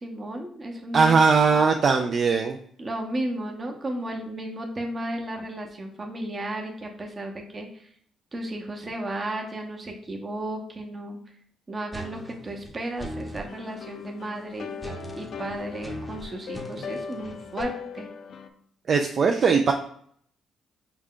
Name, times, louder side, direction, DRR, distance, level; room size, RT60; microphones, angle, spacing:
voice 1, 0.0-1.2 2.8-7.9 8.3-11.2 11.7-14.7 15.2-18.1, right 1 dB, 30° right, 2 dB, 0.8 m, -34 dB
voice 2, 0.9-2.6 18.9-19.7, right 5 dB, 50° right, 4 dB, 0.3 m, -20 dB
sound 1, 11.9-13.5 14.8-17.6, equal, ahead, 0.7 m, -39 dB
sound 2, 13.5-18.5, left 6 dB, 60° left, 0.4 m, -39 dB
4.7 x 2.2 x 3.6 m, 0.64 s
cardioid pair, 90°, 0 cm